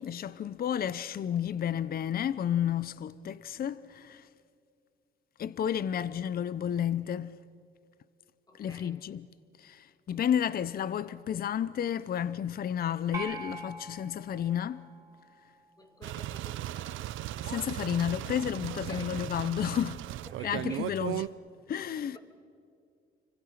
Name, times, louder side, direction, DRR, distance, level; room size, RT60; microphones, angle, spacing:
voice 1, 0.0-4.3 5.4-7.4 8.5-9.3 9.6-14.8 17.4-20.0 20.4-21.2 21.7-22.2, left 9 dB, 50° left, 0.6 m, -31 dB
voice 2, 8.5-9.0 10.1-10.6 15.8-17.1 18.8-19.2 20.2-20.9 21.8-22.2, left 1 dB, 20° left, 3.4 m, -50 dB
sound 1, 13.1-15.6, right 2 dB, 15° right, 4.3 m, -43 dB
sound 2, 16.0-21.3, right 14 dB, 85° right, 0.6 m, -37 dB
30.0 x 25.0 x 5.8 m
cardioid pair, 90°, 20 cm